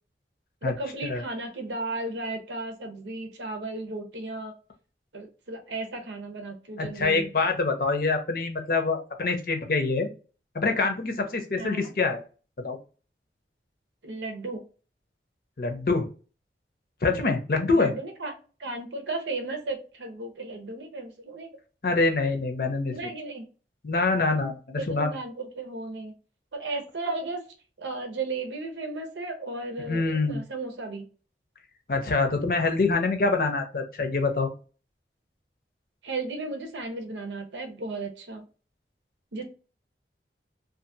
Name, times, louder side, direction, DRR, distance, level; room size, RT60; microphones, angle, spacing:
voice 1, 0.6-4.5 5.1-7.3 11.6-11.9 14.0-14.6 17.7-18.3 18.6-21.5 22.9-23.4 24.8-26.1 26.5-27.4 27.8-31.1 36.0-38.4 39.3-39.4, right 2 dB, 90° right, 5 dB, 0.7 m, -34 dB
voice 2, 6.8-10.1 10.5-12.2 12.6-12.8 15.6-16.1 17.0-17.9 21.8-23.1 23.8-25.1 29.9-30.4 31.9-34.5, left 3 dB, 55° left, 5 dB, 0.6 m, -25 dB
2.7 x 2.4 x 2.5 m, 0.36 s
head